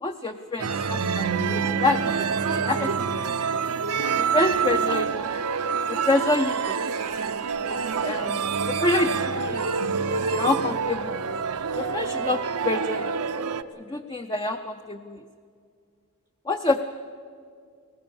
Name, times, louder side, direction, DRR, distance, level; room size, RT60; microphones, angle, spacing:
voice 1, 0.0-3.7 4.2-5.2 5.9-6.8 7.6-8.4 8.7-9.6 10.3-11.2 11.8-13.1 13.8-15.2 16.5-16.8, left 2 dB, 20° left, 6 dB, 0.6 m, -27 dB
sound 1, 0.6-13.6, right 5 dB, 85° right, 0.8 m, -27 dB
23.5 x 18.5 x 7.1 m, 2.2 s
head